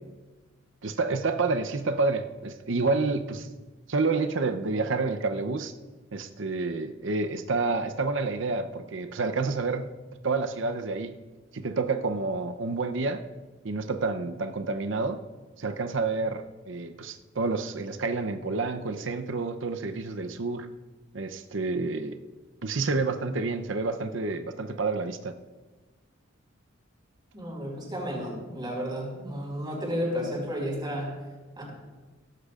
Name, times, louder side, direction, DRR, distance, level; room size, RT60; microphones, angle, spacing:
voice 1, 0.8-3.5 3.9-5.7 6.1-9.9 10.2-11.1 11.5-13.3 13.6-15.2 15.6-20.7 21.1-22.2 22.6-25.3, right 3 dB, 70° right, 8 dB, 0.7 m, -29 dB
voice 2, 27.3-31.2 31.6-31.7, equal, 25° right, -3 dB, 5.0 m, -32 dB
16.5 x 15.0 x 2.5 m, 1.3 s
head